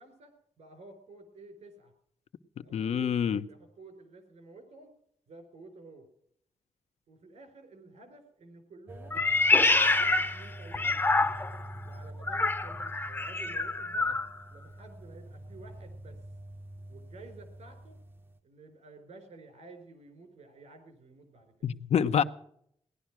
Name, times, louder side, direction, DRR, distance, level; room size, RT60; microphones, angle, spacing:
voice 1, 0.0-1.9 2.6-4.9 5.3-6.1 7.1-9.2 9.8-11.0 11.9-14.2 14.5-16.2 16.9-18.0 18.4-21.7, right 2 dB, 80° right, 4.4 m, -52 dB
voice 2, 2.7-3.4 21.6-22.2, left 8 dB, 75° left, 0.8 m, -26 dB
sound 1, 8.9-18.4, right 1 dB, 20° right, 0.7 m, -46 dB
Meow, 9.1-11.7 12.2-14.3, left 3 dB, 20° left, 0.7 m, -26 dB
17.5 x 11.5 x 6.1 m
wide cardioid pair, 125°, 11 cm